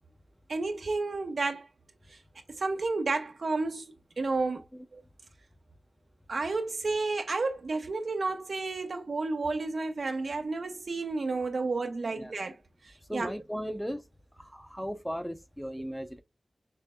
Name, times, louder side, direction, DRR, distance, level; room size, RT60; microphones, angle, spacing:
voice 1, 0.5-1.7 2.1-2.2 2.5-4.6 4.9-5.0 6.3-13.3, right 3 dB, 75° right, 1.0 m, -31 dB
voice 2, 13.1-14.0 14.4-16.2, equal, 5° left, 0.8 m, -37 dB
6.6 x 3.2 x 2.3 m
cardioid pair, 50°, 0 cm